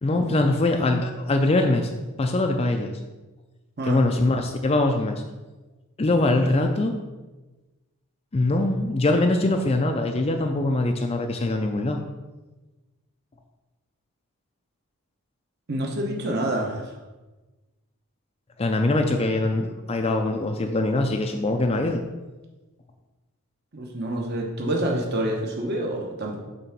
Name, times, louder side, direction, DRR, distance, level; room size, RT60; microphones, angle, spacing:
voice 1, 0.0-1.9 2.2-2.9 3.8-5.2 6.0-7.0 8.3-12.0 18.6-22.0, left 2 dB, 25° left, 4 dB, 0.4 m, -23 dB
voice 2, 15.7-16.9 23.7-26.4, right 1 dB, 50° right, 0 dB, 1.0 m, -27 dB
6.8 x 3.7 x 5.9 m, 1.2 s
head